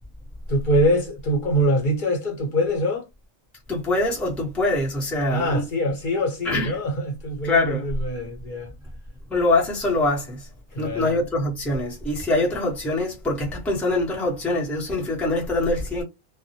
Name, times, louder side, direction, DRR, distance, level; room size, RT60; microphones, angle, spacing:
voice 1, 0.5-3.1 5.3-8.7 10.7-11.2, equal, 40° left, 0.9 m, -24 dB
voice 2, 3.7-5.6 6.4-6.7 7.4-7.9 9.3-10.5 10.8-16.0, left 2 dB, ahead, 0.7 m, -24 dB
2.3 x 2.0 x 2.8 m
omnidirectional pair, 1.4 m